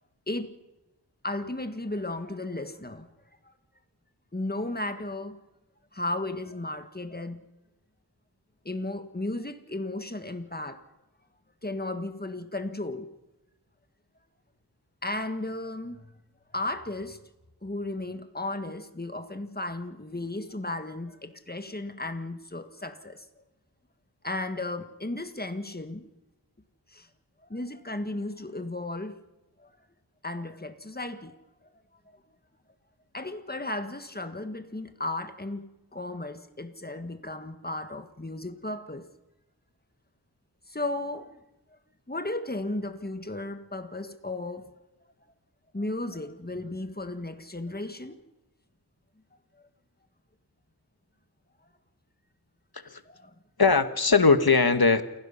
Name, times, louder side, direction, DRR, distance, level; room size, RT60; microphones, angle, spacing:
voice 1, 0.3-0.6 1.2-3.1 3.4-3.5 4.3-5.4 5.9-7.4 8.7-10.8 11.6-13.1 15.0-16.1 16.5-17.2 17.6-23.3 24.2-26.0 26.9-27.1 27.4-29.2 29.6-29.7 30.2-31.4 33.1-39.1 40.7-41.4 42.1-44.7 45.7-48.2 53.1-53.3, left 2 dB, 20° left, 1.6 m, -34 dB
voice 2, 53.6-55.0, left 4 dB, 60° left, 1.4 m, -20 dB
29.0 x 16.5 x 5.7 m
wide cardioid pair, 45°, 41 cm